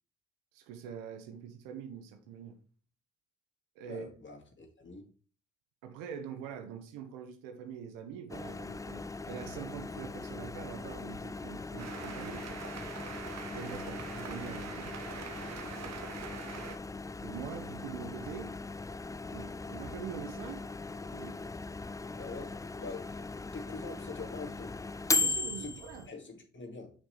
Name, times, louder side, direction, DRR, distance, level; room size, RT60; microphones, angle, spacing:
voice 1, 0.5-2.6 3.7-4.1 5.8-12.6 13.5-14.9 17.2-18.5 19.3-20.6 21.1-21.4 25.2-26.1, right 7 dB, 75° right, 1.2 m, -44 dB
voice 2, 3.9-5.1 13.8-14.0 16.0-16.5 19.3-19.8 22.2-23.2 23.5-24.8 25.6-25.7 26.1-26.9, left 3 dB, 35° left, 2.2 m, -45 dB
Microwave oven, 8.3-26.1, left 3 dB, 10° left, 0.4 m, -38 dB
sound 1, 11.8-16.8, right 6 dB, 50° right, 1.1 m, -44 dB
6.5 x 6.4 x 3.3 m
hypercardioid pair, 45°, 33 cm